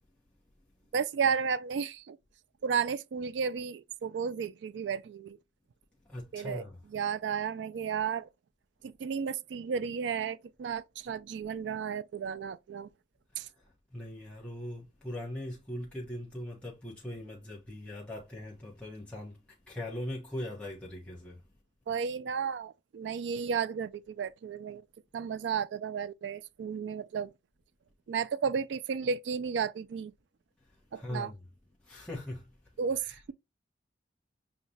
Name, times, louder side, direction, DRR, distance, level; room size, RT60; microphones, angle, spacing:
voice 1, 0.9-2.2 2.6-5.4 6.3-6.6 6.9-8.3 8.8-12.9 13.4-13.5 21.9-24.8 25.1-27.3 28.1-30.1 30.9-31.3 32.8-33.3, right 6 dB, 90° right, 0.3 m, -33 dB
voice 2, 6.1-6.8 13.4-21.4 30.9-31.4 31.8-32.6 33.0-33.2, left 1 dB, 5° left, 0.9 m, -41 dB
6.4 x 2.2 x 2.7 m
head